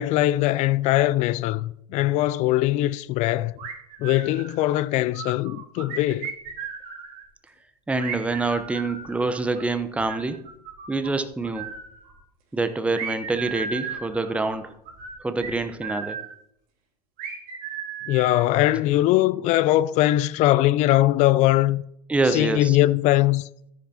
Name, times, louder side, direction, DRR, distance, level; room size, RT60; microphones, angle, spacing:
voice 1, 0.0-3.5 4.0-6.3 18.1-21.8 22.3-23.5, left 15 dB, 35° left, 0.4 m, -21 dB
sound 1, 3.6-4.8 5.1-7.2 8.0-11.1 11.4-12.2 12.9-16.3 17.2-19.0, right 6 dB, 45° right, 3.8 m, -36 dB
voice 2, 7.9-10.4 10.9-11.7 12.5-14.8 15.2-16.2 22.1-22.8, right 3 dB, 5° right, 0.8 m, -26 dB
13.5 x 10.5 x 2.8 m
hypercardioid pair, 95°, 20 cm